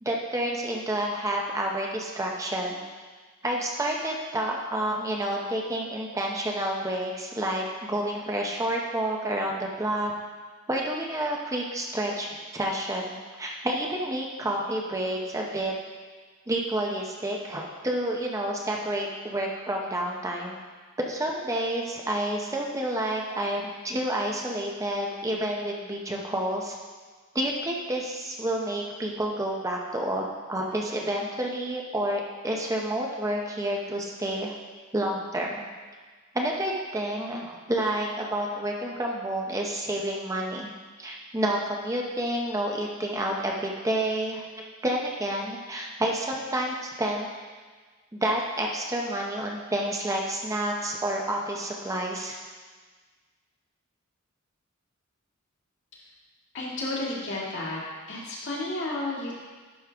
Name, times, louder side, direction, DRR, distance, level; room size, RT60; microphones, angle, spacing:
voice 1, 0.0-2.8 3.4-10.1 10.7-15.7 16.5-20.6 21.1-26.8 27.3-34.5 34.9-35.7 36.3-40.7 41.0-44.4 44.8-47.3 48.1-52.4, right 1 dB, 15° right, -1 dB, 0.6 m, -29 dB
voice 2, 56.5-57.8 58.1-59.3, left 2 dB, 60° left, -5 dB, 2.0 m, -32 dB
10.5 x 5.2 x 3.4 m, 1.4 s
head